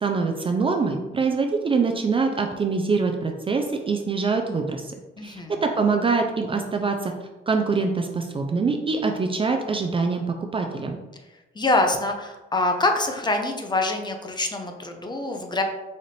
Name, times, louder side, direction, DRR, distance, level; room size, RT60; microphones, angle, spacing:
voice 1, 0.0-4.9 5.2-7.1 7.5-11.0, right 4 dB, 25° right, 4 dB, 0.4 m, -24 dB
voice 2, 5.2-5.6 11.5-15.6, left 2 dB, 20° left, 4 dB, 0.5 m, -25 dB
4.2 x 2.5 x 3.2 m, 1.1 s
cardioid pair, 90°, 20 cm